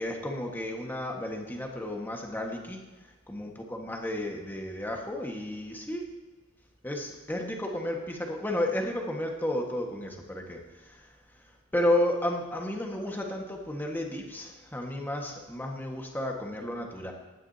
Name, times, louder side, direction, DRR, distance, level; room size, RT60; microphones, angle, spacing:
voice 1, 0.0-6.0 6.8-11.1 11.7-17.1, left 1 dB, 10° left, 1 dB, 1.5 m, -32 dB
16.0 x 11.0 x 2.8 m, 1.2 s
head